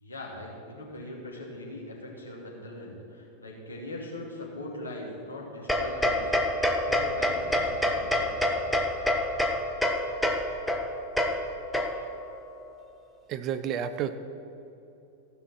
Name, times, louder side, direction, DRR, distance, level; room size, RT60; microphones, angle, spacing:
voice 1, 0.0-6.3 6.8-8.8, left 1 dB, 75° left, -3 dB, 2.4 m, -41 dB
sound 1, 5.7-12.3, left 1 dB, ahead, 0.9 m, -27 dB
voice 2, 13.3-14.2, right 8 dB, 35° right, 11 dB, 0.6 m, -30 dB
15.0 x 5.8 x 6.1 m, 2.8 s
figure-of-eight pair, 90°, 0 cm